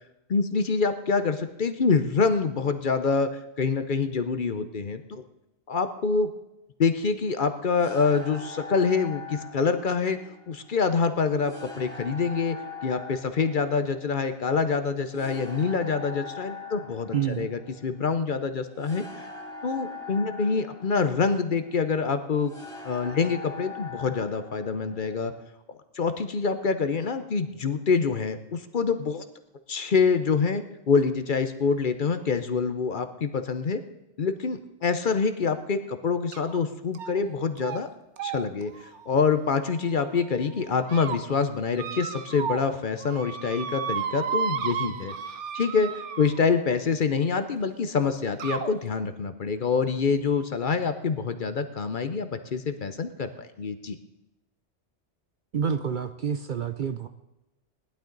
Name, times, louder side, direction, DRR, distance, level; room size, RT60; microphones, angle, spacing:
voice 1, 0.3-3.3 3.6-5.2 5.7-6.3 6.8-10.2 10.5-12.6 12.8-19.3 19.6-22.5 22.8-25.3 25.9-29.2 29.7-33.8 34.2-37.9 38.2-45.1 45.5-54.0, left 5 dB, 50° left, 9 dB, 0.8 m, -26 dB
sound 1, 7.7-25.5, left 4 dB, 5° left, 2.6 m, -42 dB
voice 2, 17.1-17.5 55.5-57.1, right 7 dB, 55° right, 9 dB, 0.7 m, -28 dB
sound 2, 36.3-36.6 36.9-37.3 37.6-37.8 38.2-40.1 40.6-41.2 41.8-42.7 43.0-46.6 47.6-47.7 48.4-48.7, right 7 dB, 80° right, 1.1 m, -33 dB
18.5 x 11.5 x 3.9 m, 0.96 s
omnidirectional pair, 1.2 m